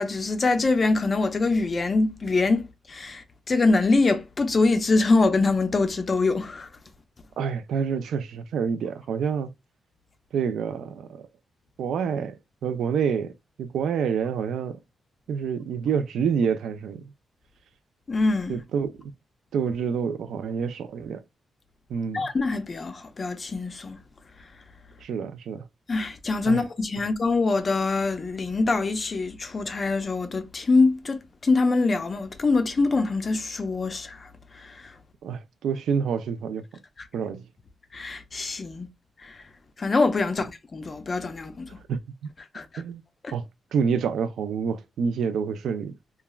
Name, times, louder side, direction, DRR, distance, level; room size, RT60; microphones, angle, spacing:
voice 1, 0.0-6.7 18.1-18.6 22.1-24.0 25.9-34.3 34.5-34.9 37.9-38.9 39.2-39.4 39.8-41.7 42.5-42.8 43.2-43.3, left 3 dB, 30° left, 0.4 m, -24 dB
voice 2, 7.4-9.5 10.3-11.2 11.8-13.3 13.6-14.8 15.3-17.0 18.5-18.9 19.5-21.2 21.9-22.3 25.0-25.7 26.5-26.6 35.2-36.6 37.1-37.4 41.9-42.3 42.8-43.0 43.3-43.4 43.7-45.9, right 6 dB, 85° right, 0.3 m, -27 dB
3.0 x 2.3 x 2.2 m
wide cardioid pair, 140°, 0 cm